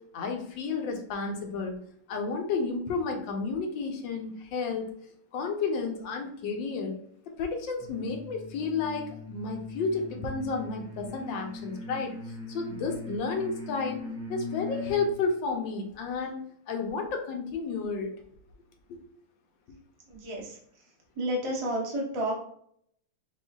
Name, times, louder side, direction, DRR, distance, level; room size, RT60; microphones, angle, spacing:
voice 1, 0.1-1.8 2.1-4.9 5.3-7.0 7.4-12.2 12.5-18.1 18.9-19.0, left 4 dB, 70° left, 3 dB, 1.5 m, -32 dB
sound 1, 7.8-15.2, left 3 dB, 5° right, 1.0 m, -40 dB
voice 2, 20.1-20.6 21.2-22.3, right 1 dB, 55° right, -2 dB, 0.3 m, -31 dB
6.1 x 3.1 x 2.4 m, 0.67 s
omnidirectional pair, 2.2 m